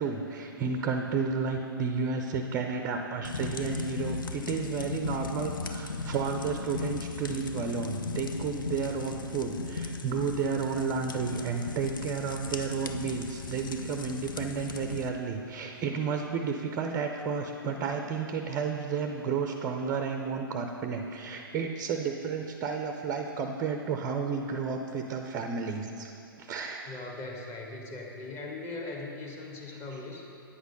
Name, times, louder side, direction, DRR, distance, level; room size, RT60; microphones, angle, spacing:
voice 1, 0.0-26.1 26.4-26.9 29.7-29.8, right 5 dB, 20° right, 5 dB, 0.5 m, -32 dB
sound 1, 3.2-15.1, left 4 dB, 60° left, 0.7 m, -37 dB
voice 2, 26.9-30.2, left 3 dB, 20° left, 0 dB, 1.3 m, -39 dB
9.7 x 8.0 x 5.3 m, 2.7 s
figure-of-eight pair, 120°, 12 cm